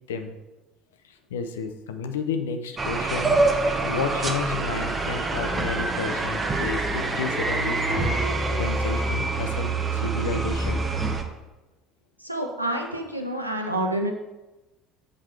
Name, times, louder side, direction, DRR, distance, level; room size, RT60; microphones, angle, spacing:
voice 1, 1.3-3.4 3.8-8.2 8.6-10.9, left 5 dB, 70° left, 7 dB, 0.6 m, -31 dB
sound 1, 2.8-11.2, right 3 dB, 25° right, 0.8 m, -25 dB
voice 2, 12.2-14.1, right 1 dB, 85° right, 4 dB, 0.7 m, -28 dB
7.6 x 4.8 x 4.4 m, 1.1 s
figure-of-eight pair, 60°, 0 cm